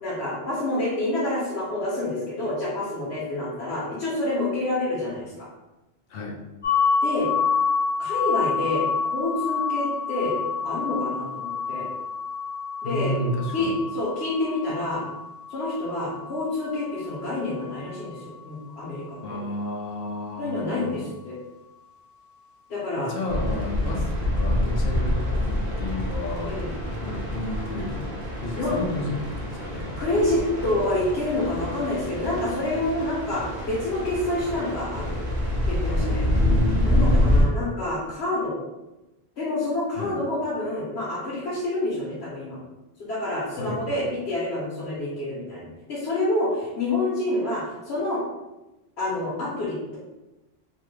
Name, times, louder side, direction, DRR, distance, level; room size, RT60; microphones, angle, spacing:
voice 1, 0.0-5.5 7.0-7.3 8.0-8.8 9.1-10.4 10.6-11.9 12.8-13.1 13.5-15.0 15.5-19.4 20.4-21.3 22.7-23.1 26.4-26.7 28.5-28.8 30.0-35.2 35.7-36.2 36.8-38.6 39.4-42.6 43.0-48.2 49.0-50.0, left 2 dB, 85° left, -7 dB, 1.1 m, -28 dB
sound 1, 6.6-18.4, left 5 dB, 35° left, 0.8 m, -28 dB
voice 2, 12.8-13.8 19.2-21.0 23.0-26.6 27.0-29.9 36.0-37.3 39.9-40.2 43.6-44.1, left 1 dB, 65° left, 1 dB, 0.8 m, -32 dB
sound 2, 23.3-37.4, left 1 dB, 65° right, 1.0 m, -26 dB
3.2 x 2.1 x 3.1 m, 1.0 s
omnidirectional pair, 1.1 m